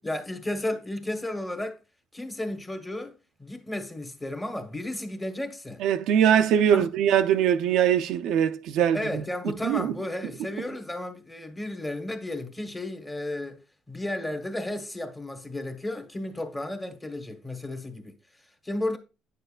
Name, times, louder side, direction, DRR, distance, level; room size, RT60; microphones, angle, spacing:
voice 1, 0.0-1.8 2.1-5.8 6.7-6.9 8.9-13.6 13.9-18.1 18.6-19.0, left 1 dB, 10° left, 1.2 m, -33 dB
voice 2, 5.8-9.2 9.6-9.9, right 9 dB, 75° right, 0.5 m, -22 dB
9.2 x 6.7 x 2.4 m
cardioid pair, 120°, 0 cm